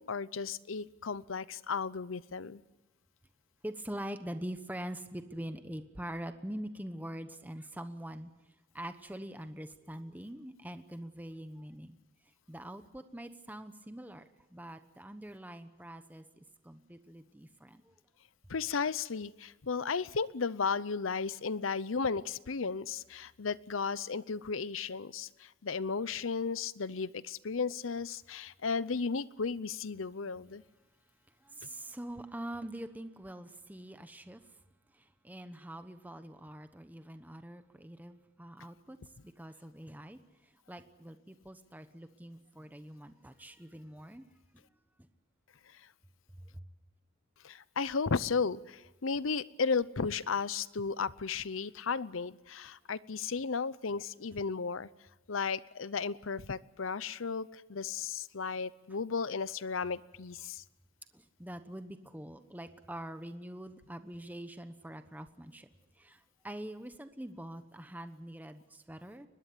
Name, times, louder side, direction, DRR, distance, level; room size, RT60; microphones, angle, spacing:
voice 1, 0.0-2.6 18.5-30.6 47.4-54.9 55.3-60.6, left 5 dB, 85° left, 18 dB, 0.7 m, -34 dB
voice 2, 3.6-8.3 8.7-12.0 12.5-14.2 14.5-17.9 31.4-34.4 34.9-39.0 39.2-44.2 44.5-44.6 46.4-46.7 61.1-65.7 65.9-69.3, right 1 dB, 10° right, 9 dB, 1.0 m, -44 dB
23.0 x 20.5 x 8.5 m, 1.0 s
head